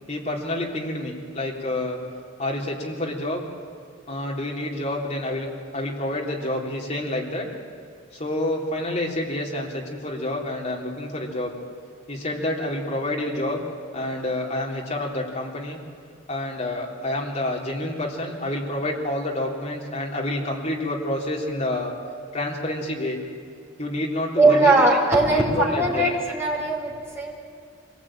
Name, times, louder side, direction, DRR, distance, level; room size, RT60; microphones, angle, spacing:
voice 1, 0.1-2.0 2.4-3.4 4.1-7.5 8.1-11.5 12.1-13.7 13.9-15.8 16.3-21.9 22.3-23.2 23.8-24.7 25.3-26.0, left 1 dB, 35° left, -1 dB, 3.5 m, -28 dB
voice 2, 24.4-27.3, right 2 dB, 15° right, -2 dB, 4.4 m, -20 dB
24.5 x 18.5 x 9.0 m, 2.3 s
head